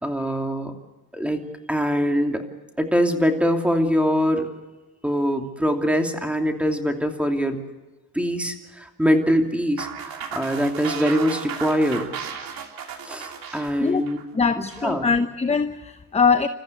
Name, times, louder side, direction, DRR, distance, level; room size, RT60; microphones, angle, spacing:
voice 1, 0.0-0.7 1.1-2.4 2.8-4.5 5.0-7.6 8.1-12.1 13.0-14.2 14.5-15.1, equal, 5° right, 4 dB, 2.9 m, -23 dB
sound 1, 9.8-14.9, right 7 dB, 60° right, 3.2 m, -35 dB
voice 2, 14.3-16.5, left 5 dB, 15° left, 9 dB, 0.9 m, -22 dB
29.0 x 14.5 x 8.2 m, 1.2 s
cardioid pair, 105°, 40 cm